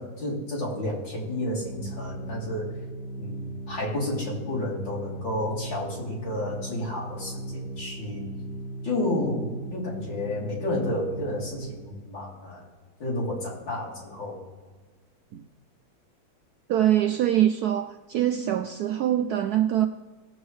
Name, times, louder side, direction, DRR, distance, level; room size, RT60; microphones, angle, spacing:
voice 1, 0.0-2.7 3.2-8.3 8.8-12.6 13.0-14.4, left 1 dB, 70° left, -5 dB, 4.0 m, -31 dB
Organ, 1.2-12.0, right 1 dB, 85° left, 2.0 m, -37 dB
voice 2, 16.7-19.9, right 11 dB, 75° right, 6 dB, 0.9 m, -24 dB
19.0 x 8.0 x 3.2 m, 1.5 s
omnidirectional pair, 2.1 m